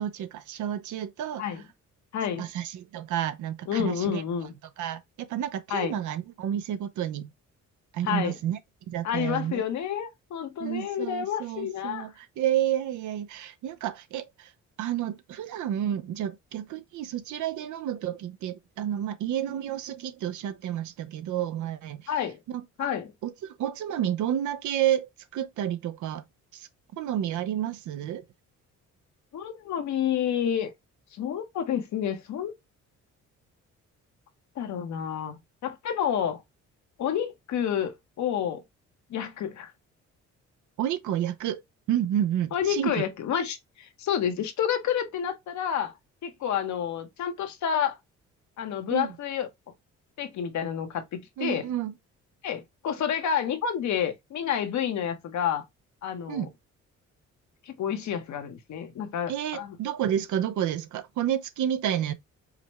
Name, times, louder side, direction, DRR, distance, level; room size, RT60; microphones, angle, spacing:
voice 1, 0.0-1.4 2.4-4.2 4.8-7.3 7.9-8.6 8.9-9.6 10.6-14.5 14.8-22.1 22.5-22.9 23.2-26.2 26.5-26.7 27.0-28.2 40.8-43.0 48.9-49.1 51.4-51.9 56.3-56.5 59.3-62.1, right 10 dB, 75° right, 0.6 m, -30 dB
voice 2, 2.1-2.5 3.7-4.5 5.7-5.9 8.0-8.3 9.0-12.1 22.1-22.4 22.8-23.1 29.3-30.7 31.1-32.5 34.6-36.4 37.0-38.6 39.1-39.7 42.5-46.0 46.2-48.0 48.6-49.5 50.2-51.6 52.4-55.6 56.0-56.5 57.7-59.8, left 9 dB, 70° left, 1.0 m, -29 dB
4.9 x 2.2 x 2.9 m
cardioid pair, 90°, 30 cm